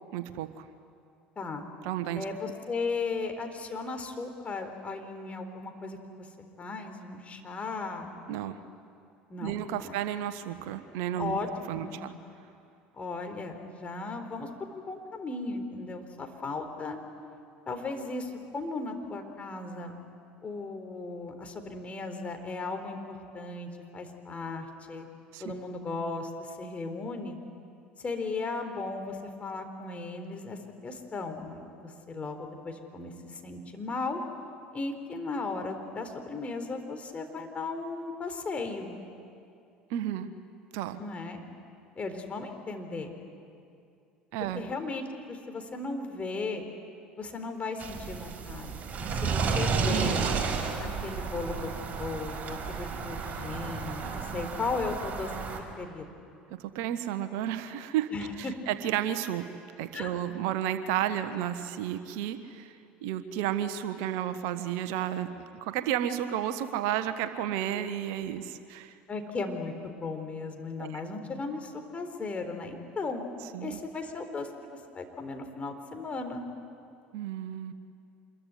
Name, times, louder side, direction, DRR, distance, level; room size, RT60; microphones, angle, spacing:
voice 1, 0.1-0.6 1.8-2.2 8.3-8.6 9.4-11.4 11.7-12.1 25.3-25.4 39.9-40.3 40.7-41.0 44.3-44.6 56.5-58.1 58.4-59.5 59.8-62.7 63.0-68.9 70.8-71.0 73.5-73.8 77.1-77.7, right 11 dB, 65° right, 10 dB, 1.3 m, -32 dB
voice 2, 2.2-6.3 6.6-8.1 9.3-9.9 11.2-11.5 11.7-12.0 12.9-17.0 17.7-20.0 20.4-25.1 25.4-27.4 28.0-34.2 34.7-38.9 41.0-41.4 42.0-43.1 44.6-46.6 47.2-50.2 50.8-51.7 52.0-56.0 58.1-58.6 59.9-60.2 69.1-73.3 73.6-76.4, left 3 dB, 30° left, 5 dB, 4.0 m, -36 dB
sound 1, 47.8-55.6, right 5 dB, 35° right, 5.2 m, -32 dB
26.5 x 22.5 x 9.8 m, 2.5 s
hypercardioid pair, 65°, 5 cm